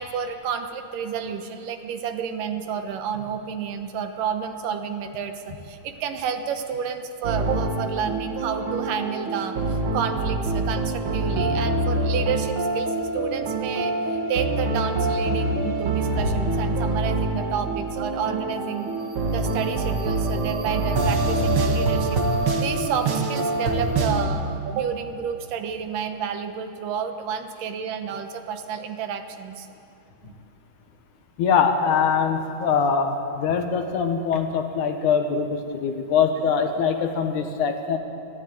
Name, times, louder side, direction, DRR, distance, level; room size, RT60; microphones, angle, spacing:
voice 1, 0.0-18.9 19.3-22.2 22.6-29.7 30.2-30.3, right 7 dB, 85° right, 7 dB, 2.8 m, -30 dB
sound 1, 7.2-24.2, right 2 dB, 45° right, 2.1 m, -25 dB
voice 2, 31.4-38.0, left 6 dB, 70° left, 6 dB, 2.7 m, -23 dB
21.0 x 14.0 x 9.3 m, 2.6 s
omnidirectional pair, 3.7 m